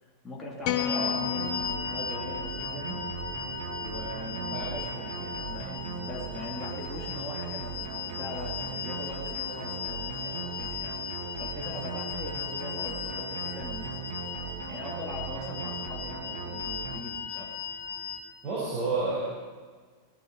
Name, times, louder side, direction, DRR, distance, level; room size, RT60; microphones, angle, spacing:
voice 1, 0.0-3.0 3.8-11.0 11.4-14.0 14.7-17.5, left 1 dB, 20° left, -4 dB, 2.7 m, -41 dB
sound 1, 0.6-3.0, left 11 dB, 45° left, 0.9 m, -33 dB
sound 2, 0.7-18.2, left 7 dB, 70° left, 2.2 m, -37 dB
sound 3, 1.2-17.0, right 6 dB, 55° right, 1.3 m, -39 dB
voice 2, 18.4-19.2, right 3 dB, 35° right, -7 dB, 5.3 m, -30 dB
19.0 x 11.0 x 4.8 m, 1.5 s
figure-of-eight pair, 90°, 0 cm